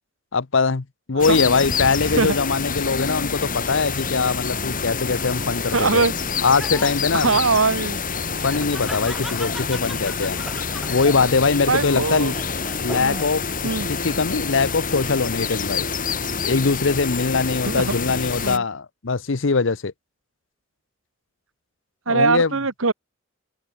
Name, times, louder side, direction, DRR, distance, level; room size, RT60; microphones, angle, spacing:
voice 1, 0.3-6.0 6.4-7.3 8.4-10.4 10.9-12.3 12.8-13.4 13.9-15.9 16.4-19.9 22.1-22.5, left 4 dB, 65° left, 0.8 m, -22 dB
sound 1, 1.2-18.6, left 5 dB, 40° left, 3.5 m, -27 dB
Laughter, 5.1-13.5 13.9-14.6, equal, ahead, 7.9 m, -39 dB
voice 2, 5.7-6.1 7.1-8.0 11.7-12.3 12.8-13.2 13.6-13.9 17.6-18.0 18.4-18.6 22.1-22.9, right 4 dB, 80° right, 1.6 m, -21 dB
head